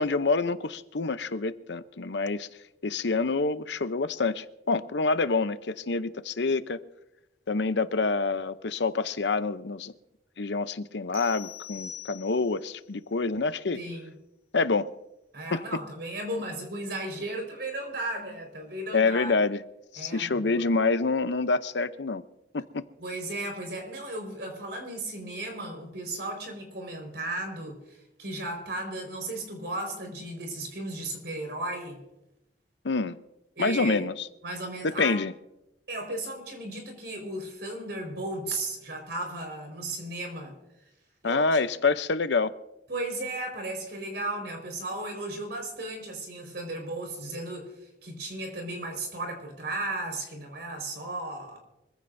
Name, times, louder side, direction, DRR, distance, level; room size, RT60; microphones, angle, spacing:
voice 1, 0.0-2.5 2.8-6.8 7.5-9.9 10.4-13.8 14.5-14.9 15.5-15.6 18.9-19.6 19.9-22.2 22.5-22.8 32.8-33.2 33.6-34.3 34.8-35.3 41.2-42.5, left 3 dB, 75° left, 12 dB, 0.7 m, -27 dB
sound 1, 11.1-12.7, left 8 dB, 30° right, 3.4 m, -43 dB
voice 2, 13.7-14.1 15.3-19.3 20.0-20.6 23.0-32.0 33.5-34.0 34.4-35.2 35.9-40.6 41.2-41.6 42.9-51.6, right 2 dB, 65° right, 3 dB, 4.9 m, -35 dB
24.5 x 15.5 x 2.7 m, 0.89 s
head